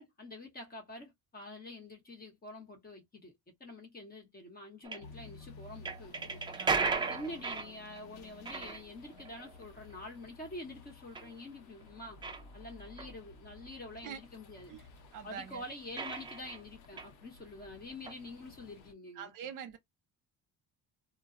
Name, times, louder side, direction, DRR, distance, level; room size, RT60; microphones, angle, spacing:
voice 1, 0.0-6.4 6.8-12.2 12.5-14.7 15.2-19.3, left 1 dB, 25° left, 1.0 m, -47 dB
sound 1, 4.8-5.0 5.8-8.1 8.4-9.9 11.1-11.3 11.8-11.9 12.2-12.5 13.0-13.1 16.0-17.1 17.9-18.1, right 4 dB, 15° right, 0.3 m, -35 dB
sound 2, 5.0-18.9, left 4 dB, 85° left, 0.8 m, -55 dB
voice 2, 6.6-7.0 14.0-14.2 14.7-15.6 19.1-19.8, right 8 dB, 60° right, 0.7 m, -45 dB
2.2 x 2.0 x 3.7 m
cardioid pair, 150°, 36 cm